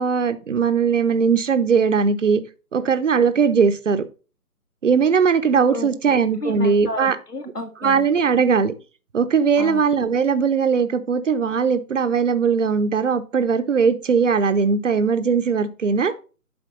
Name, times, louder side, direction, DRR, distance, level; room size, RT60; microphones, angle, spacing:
voice 1, 0.0-2.4 2.7-4.1 4.8-7.2 7.8-8.7 9.1-16.1, right 6 dB, 50° right, 1.0 m, -19 dB
voice 2, 5.7-6.1 6.4-8.1 9.6-9.8 16.1-16.2, left 2 dB, 80° left, 2.3 m, -32 dB
11.5 x 4.4 x 4.0 m
figure-of-eight pair, 150°, 47 cm